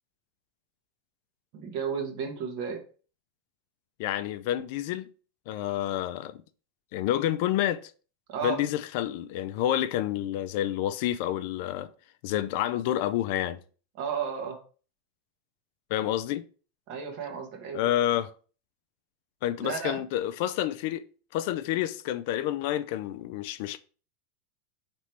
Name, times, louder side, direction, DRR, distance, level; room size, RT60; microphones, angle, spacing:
voice 1, 1.5-2.8 8.3-8.6 14.0-14.6 16.9-17.9 19.6-20.0, right 6 dB, 55° right, 1.1 m, -33 dB
voice 2, 4.0-5.1 5.5-6.4 6.9-7.9 8.4-11.9 12.2-13.6 15.9-16.4 17.7-18.3 19.4-21.0 21.3-23.8, left 12 dB, 65° left, 0.3 m, -29 dB
4.2 x 3.0 x 3.1 m
supercardioid pair, 120°, 0 cm